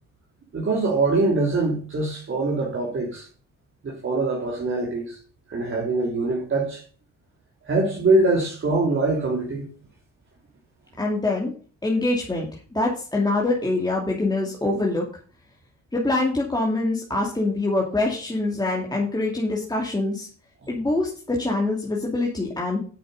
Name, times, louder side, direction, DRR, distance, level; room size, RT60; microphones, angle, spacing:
voice 1, 0.5-3.3 3.8-5.2 5.5-6.8 7.6-9.7, right 2 dB, 40° right, 3.2 m, -23 dB
voice 2, 11.0-11.5 11.8-15.1 15.9-20.3 20.7-22.8, left 2 dB, 15° left, 2.8 m, -24 dB
9.0 x 6.8 x 6.7 m
cardioid pair, 90°, 30 cm